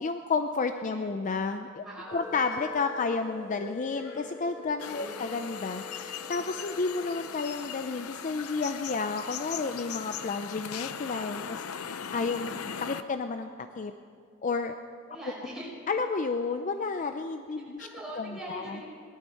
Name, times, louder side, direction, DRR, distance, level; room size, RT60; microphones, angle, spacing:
voice 1, 0.0-1.8 2.1-11.6 12.1-12.5 12.8-13.9 14.4-14.7 15.9-17.9 18.2-18.8, left 4 dB, 35° left, 8 dB, 0.5 m, -31 dB
voice 2, 1.8-2.3 4.8-5.2 12.3-12.7 15.1-15.7 17.6-18.8, right 1 dB, 5° right, -6 dB, 5.1 m, -43 dB
sound 1, 2.1-7.3, left 5 dB, 65° left, 2.6 m, -43 dB
sound 2, 4.8-13.0, left 8 dB, 85° left, 0.6 m, -39 dB
19.0 x 12.5 x 5.6 m, 2.2 s
head